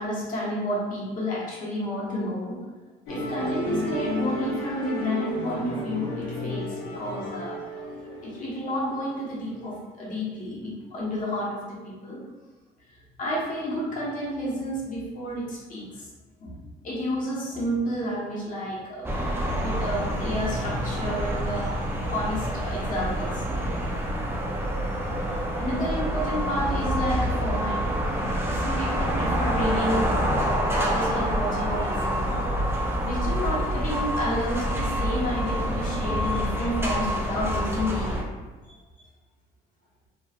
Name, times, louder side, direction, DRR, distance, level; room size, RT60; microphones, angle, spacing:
voice 1, 0.0-2.6 3.1-7.5 8.2-11.6 11.8-12.2 13.2-16.1 16.4-19.1 19.6-23.4 25.3-27.8 28.1-28.3 28.6-30.2 30.8-32.4 33.0-38.3 38.6-38.7, equal, 50° left, -6 dB, 1.1 m, -30 dB
Musical instrument, 3.1-9.7, equal, 85° left, 0.9 m, -33 dB
sound 1, 19.0-38.2, equal, 15° right, 0.5 m, -27 dB
3.1 x 2.6 x 2.4 m, 1.2 s
cardioid pair, 110°, 17 cm